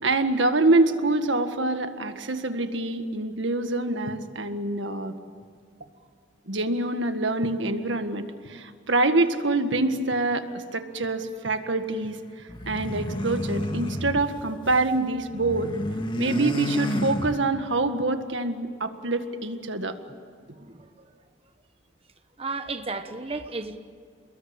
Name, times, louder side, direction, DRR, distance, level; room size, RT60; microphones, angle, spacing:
voice 1, 0.0-5.1 6.5-12.2 12.7-15.7 16.2-20.0, right 2 dB, 80° right, 8 dB, 1.8 m, -25 dB
sound 1, 12.5-14.9 15.2-17.8, left 1 dB, 25° left, 1.9 m, -31 dB
voice 2, 20.4-21.1 22.4-23.8, right 3 dB, 30° right, 7 dB, 1.2 m, -34 dB
29.5 x 21.5 x 8.9 m, 2.2 s
head